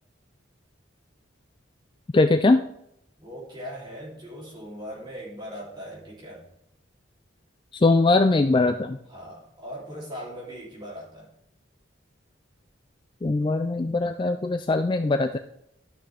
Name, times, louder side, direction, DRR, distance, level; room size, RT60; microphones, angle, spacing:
voice 1, 2.1-2.6 7.7-9.0 13.2-15.4, left 3 dB, 25° left, 8 dB, 0.3 m, -21 dB
voice 2, 3.2-6.4 9.1-11.3, equal, 20° right, -5 dB, 3.2 m, -39 dB
12.0 x 6.0 x 3.4 m, 0.76 s
head